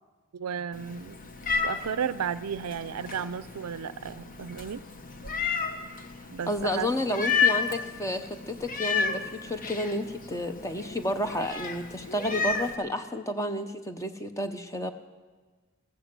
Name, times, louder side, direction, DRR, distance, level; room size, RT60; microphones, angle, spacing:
voice 1, 0.3-1.2 1.6-4.8 6.3-7.2, right 7 dB, 85° right, 16 dB, 0.5 m, -34 dB
Meow, 0.7-12.8, left 5 dB, 40° left, 1.0 m, -32 dB
voice 2, 6.5-14.9, left 1 dB, 15° left, 8 dB, 0.8 m, -31 dB
15.0 x 14.5 x 6.1 m, 1.4 s
head